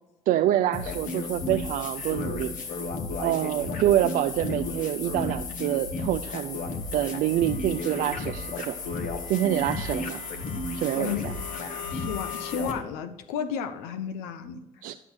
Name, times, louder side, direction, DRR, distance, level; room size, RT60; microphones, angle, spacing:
voice 1, 0.3-2.8 3.2-6.6 6.9-8.8 9.3-10.2 10.7-11.3 14.8-14.9, right 12 dB, 65° right, 8 dB, 0.4 m, -26 dB
sound 1, 0.7-12.7, left 3 dB, 60° left, 1.4 m, -33 dB
voice 2, 11.9-14.6, left 7 dB, 85° left, 10 dB, 0.6 m, -33 dB
11.0 x 6.0 x 4.4 m, 1.0 s
supercardioid pair, 70°, 15 cm